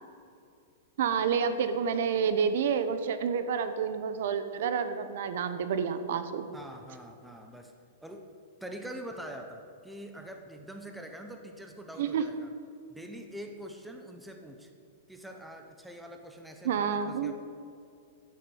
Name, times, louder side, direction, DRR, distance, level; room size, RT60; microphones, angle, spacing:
voice 1, 1.0-6.5 12.0-12.2 16.6-17.3, right 7 dB, 60° right, 10 dB, 1.0 m, -29 dB
voice 2, 6.5-7.7 8.0-8.3 8.6-12.5 12.9-14.7 15.1-17.3, right 1 dB, ahead, 4 dB, 0.8 m, -44 dB
10.5 x 8.3 x 8.0 m, 2.5 s
supercardioid pair, 170°, 0 cm